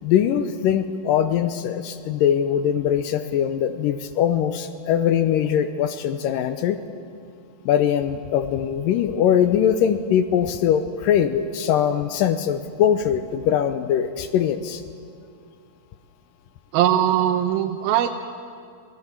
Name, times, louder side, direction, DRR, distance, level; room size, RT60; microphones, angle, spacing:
voice 1, 0.0-6.8 7.7-14.8, left 9 dB, 80° left, 10 dB, 2.1 m, -21 dB
voice 2, 16.7-18.1, right 11 dB, 80° right, 5 dB, 2.4 m, -20 dB
26.5 x 17.5 x 7.4 m, 2.4 s
omnidirectional pair, 4.5 m